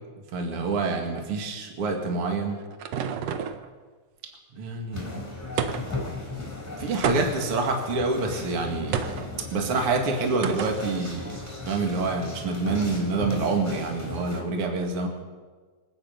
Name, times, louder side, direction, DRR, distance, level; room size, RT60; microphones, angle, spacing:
voice 1, 0.3-2.6 4.5-5.3 6.8-9.0 9.5-11.4 11.6-15.1, right 3 dB, 45° right, 2 dB, 2.5 m, -27 dB
sound 1, 2.1-3.7 5.6-6.1 7.0-7.6 8.9-9.3 10.4-10.9, right 7 dB, 90° right, 1.4 m, -29 dB
sound 2, 4.9-14.4, left 2 dB, 5° left, 3.0 m, -37 dB
26.0 x 9.1 x 5.3 m, 1.4 s
omnidirectional pair, 4.1 m